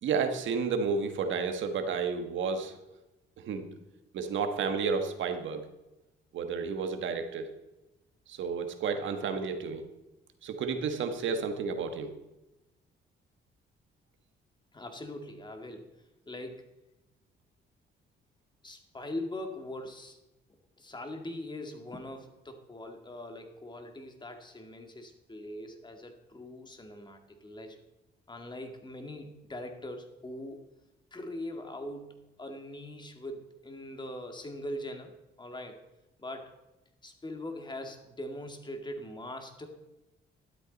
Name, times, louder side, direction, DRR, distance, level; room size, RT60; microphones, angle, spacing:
voice 1, 0.0-2.7 3.4-3.7 4.1-5.6 6.3-7.5 8.3-9.8 10.4-12.1, right 5 dB, 75° right, 7 dB, 1.5 m, -31 dB
voice 2, 14.7-15.9 16.3-16.7 18.6-20.2 20.8-27.8 28.3-30.6 31.1-35.8 36.2-36.5 37.0-39.7, left 1 dB, 20° left, 4 dB, 2.2 m, -41 dB
12.5 x 12.0 x 4.1 m, 0.97 s
cardioid pair, 90°, 20 cm